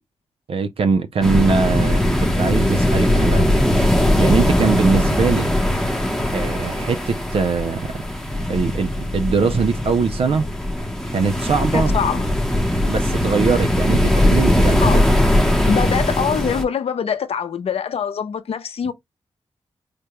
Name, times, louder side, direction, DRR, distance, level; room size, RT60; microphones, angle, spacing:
voice 1, 0.5-3.6 4.2-5.4 6.3-7.9 8.5-10.5 11.1-11.9 12.9-15.1, right 5 dB, 65° right, 0.5 m, -21 dB
sound 1, 1.2-16.6, left 1 dB, 5° left, 0.8 m, -19 dB
voice 2, 11.7-12.3 14.8-15.1 15.7-18.9, left 7 dB, 70° left, 0.6 m, -23 dB
4.9 x 2.2 x 2.9 m
wide cardioid pair, 125°, 10 cm